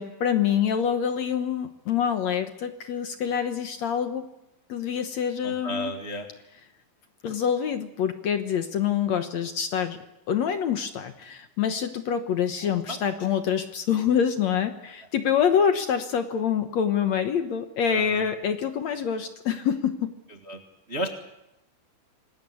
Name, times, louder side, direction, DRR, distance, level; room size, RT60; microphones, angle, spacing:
voice 1, 0.0-4.3 4.7-5.9 7.2-10.0 10.3-20.1, left 8 dB, 65° left, 8 dB, 2.0 m, -26 dB
voice 2, 5.4-6.3 12.6-13.0 17.8-18.3 20.5-20.6 20.9-21.1, equal, 35° right, 4 dB, 1.0 m, -33 dB
26.5 x 19.5 x 8.5 m, 0.90 s
omnidirectional pair, 4.2 m